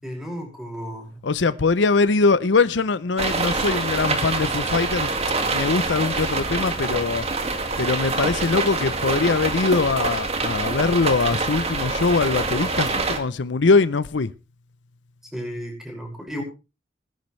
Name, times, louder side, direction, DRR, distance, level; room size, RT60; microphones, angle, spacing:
voice 1, 0.0-1.2 15.3-16.4, equal, ahead, 5.7 m, -33 dB
voice 2, 1.2-5.1 5.5-7.2 7.8-14.3, left 4 dB, 75° left, 0.7 m, -22 dB
sound 1, 3.2-13.2, right 3 dB, 35° right, 2.1 m, -25 dB
20.0 x 10.5 x 3.3 m
head